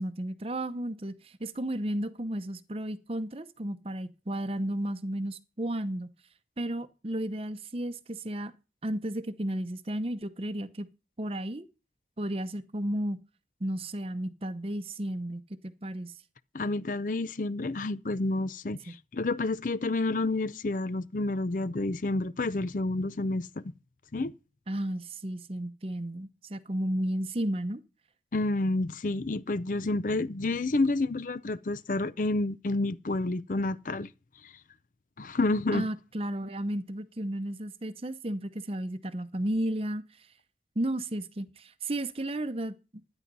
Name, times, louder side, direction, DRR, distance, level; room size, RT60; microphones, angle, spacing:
voice 1, 0.0-6.1 6.6-8.5 8.8-10.9 11.2-11.7 12.2-13.2 13.6-16.1 24.7-27.8 35.7-40.0 40.8-42.7, right 1 dB, 30° right, 0.8 m, -33 dB
voice 2, 16.5-23.6 24.1-24.3 28.3-34.1 34.4-34.5 35.2-35.9, left 2 dB, 45° left, 0.5 m, -29 dB
12.0 x 10.0 x 5.4 m
head